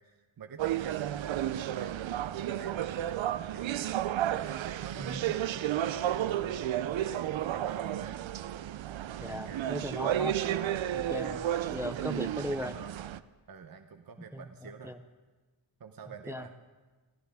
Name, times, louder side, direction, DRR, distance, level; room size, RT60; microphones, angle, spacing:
voice 1, 0.0-3.9 4.3-8.2 9.3-9.7 11.1-11.4 11.9-13.0 13.5-14.9 15.8-16.5, right 6 dB, 50° right, 7 dB, 0.8 m, -48 dB
sound 1, 0.6-13.2, right 11 dB, 80° right, 0.6 m, -32 dB
voice 2, 5.0-5.3 9.2-10.4 10.9-11.4 11.7-12.7 14.3-15.0 16.3-16.6, equal, 5° right, 11 dB, 0.4 m, -37 dB
26.5 x 14.0 x 3.5 m, 1.3 s
wide cardioid pair, 145°, 46 cm